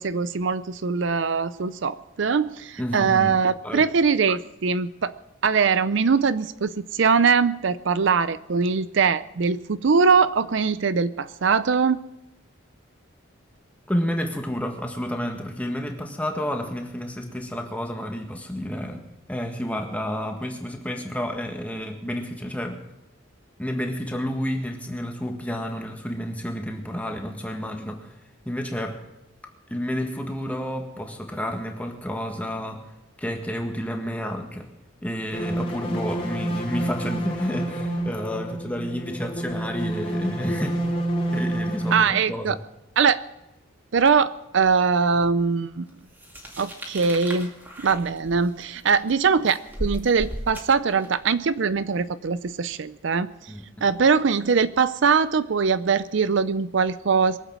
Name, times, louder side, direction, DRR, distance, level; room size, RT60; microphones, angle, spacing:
voice 1, 0.0-5.2 5.4-12.0 41.9-42.6 43.0-43.2 43.9-45.9 46.6-47.5 47.8-53.3 53.8-57.4, right 5 dB, 60° right, 14 dB, 0.5 m, -22 dB
voice 2, 2.8-3.4 3.6-3.8 13.9-22.8 23.6-28.1 28.4-29.0 29.7-32.9 33.2-34.7 35.0-41.0 41.3-42.6 53.5-53.9, equal, 5° left, 3 dB, 1.7 m, -30 dB
sound 1, 35.3-41.9, right 1 dB, 25° left, 2.7 m, -28 dB
sound 2, 46.1-51.3, equal, 10° right, 2.2 m, -36 dB
22.5 x 8.2 x 6.2 m, 0.93 s
head